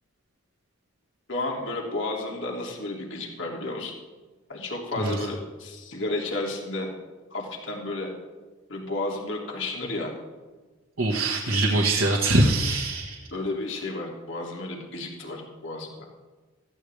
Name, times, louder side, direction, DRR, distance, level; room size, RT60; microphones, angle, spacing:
voice 1, 1.3-3.9 4.5-6.9 7.3-8.1 8.7-10.1 13.3-16.1, left 2 dB, 65° left, -1 dB, 2.9 m, -32 dB
voice 2, 11.0-13.2, right 2 dB, 85° right, -2 dB, 1.9 m, -23 dB
18.0 x 15.0 x 3.5 m, 1.3 s
head